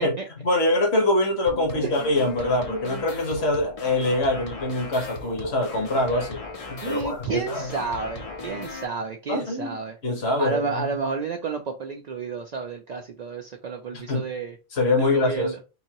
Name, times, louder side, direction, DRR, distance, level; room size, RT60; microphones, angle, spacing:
voice 1, 0.4-6.4 6.7-7.7 9.3-9.8 10.0-10.8 13.9-14.3 14.7-15.5, left 2 dB, 55° left, 1.5 m, -24 dB
sound 1, 1.5-8.8, left 3 dB, 35° left, 0.6 m, -37 dB
voice 2, 6.8-10.0 10.4-14.6 15.0-15.6, right 5 dB, 65° right, 0.4 m, -31 dB
3.8 x 2.7 x 2.9 m
omnidirectional pair, 1.3 m